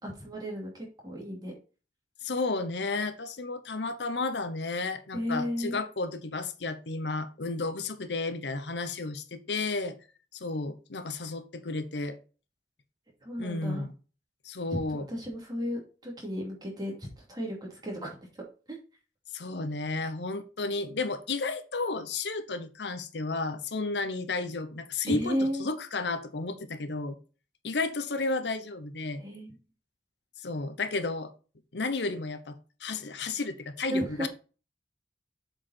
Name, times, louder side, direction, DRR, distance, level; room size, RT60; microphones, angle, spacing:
voice 1, 0.0-1.5 5.1-5.8 13.2-13.8 14.9-18.4 25.1-25.7 29.2-29.5 33.9-34.3, equal, 25° right, -2 dB, 2.8 m, -34 dB
voice 2, 2.2-10.0 10.3-12.2 13.4-13.9 14.4-15.1 19.3-27.2 27.6-29.2 30.4-31.3 31.7-32.6 32.8-34.3, left 3 dB, 80° left, 10 dB, 0.9 m, -32 dB
7.6 x 4.9 x 4.3 m, 0.35 s
head